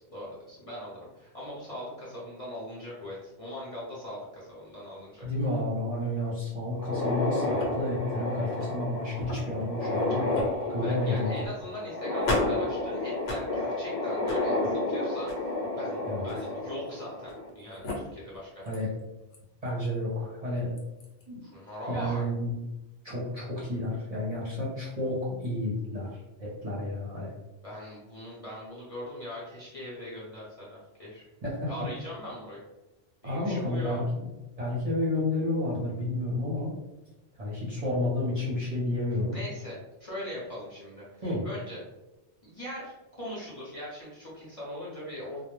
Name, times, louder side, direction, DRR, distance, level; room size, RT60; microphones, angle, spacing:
voice 1, 0.0-5.3 10.8-18.7 21.4-22.2 27.6-31.2 31.7-32.6 33.2-34.0 39.3-41.8 42.4-45.4, left 1 dB, 40° left, -8 dB, 0.6 m, -40 dB
voice 2, 5.2-10.2 10.7-11.3 16.1-16.2 18.7-18.9 19.6-20.7 21.3-21.4 21.9-22.5 23.0-26.1 26.4-27.3 31.4-31.9 33.2-34.3 34.6-36.7 37.4-39.3 41.2-41.4, left 1 dB, 40° right, -6 dB, 0.7 m, -30 dB
sound 1, 6.7-17.5 17.8-17.9 18.7-18.8 19.3-19.4 20.8-21.0, left 2 dB, 70° left, 0.9 m, -30 dB
2.2 x 2.0 x 3.0 m, 0.99 s
omnidirectional pair, 1.1 m